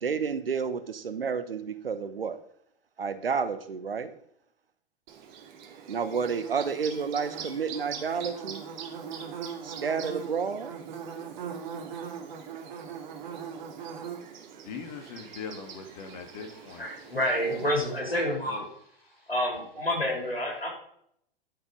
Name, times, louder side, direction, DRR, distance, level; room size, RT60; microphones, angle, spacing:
voice 1, 0.0-2.4 3.0-4.1 5.9-8.6 9.6-10.7, right 6 dB, 75° right, 12 dB, 1.1 m, -30 dB
Bird / Buzz, 5.1-18.0, right 7 dB, 50° right, 2.2 m, -41 dB
voice 2, 14.6-16.9 18.5-18.7, left 5 dB, 50° left, 5 dB, 2.3 m, -41 dB
voice 3, 16.8-18.6 19.3-20.7, equal, 85° left, -1 dB, 4.0 m, -28 dB
11.5 x 6.9 x 5.4 m, 0.69 s
figure-of-eight pair, 95°, 29 cm